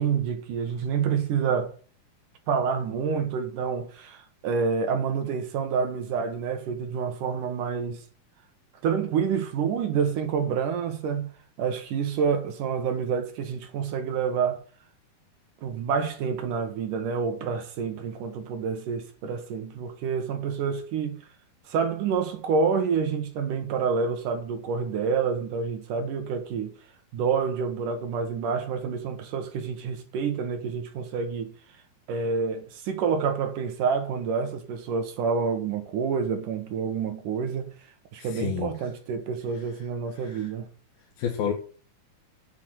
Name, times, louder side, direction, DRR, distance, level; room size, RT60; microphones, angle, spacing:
voice 1, 0.0-1.7 2.5-8.0 8.8-11.3 11.6-14.6 15.6-21.3 21.7-26.7 27.1-31.5 32.1-40.7, right 6 dB, 65° right, 2.7 m, -28 dB
voice 2, 38.2-38.7 40.2-40.5 41.2-41.5, left 8 dB, 85° left, 3.5 m, -30 dB
8.5 x 7.2 x 7.9 m
omnidirectional pair, 4.2 m